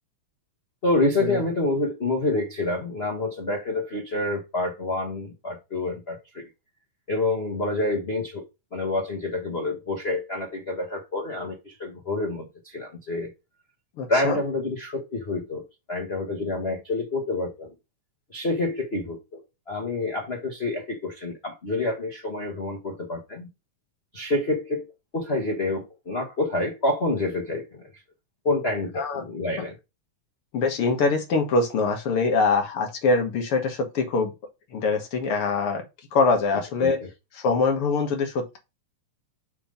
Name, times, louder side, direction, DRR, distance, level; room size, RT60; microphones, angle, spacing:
voice 1, 0.8-6.5 7.1-8.5 8.7-13.3 14.1-17.7 18.3-23.5 24.1-27.9 28.4-29.7 36.8-36.9, left 2 dB, 75° left, 0.5 m, -28 dB
voice 2, 14.0-14.4 29.0-29.2 30.5-34.3 34.7-35.9 36.1-37.0 37.3-38.6, left 4 dB, 55° left, 2.2 m, -23 dB
7.3 x 3.3 x 5.2 m
omnidirectional pair, 3.3 m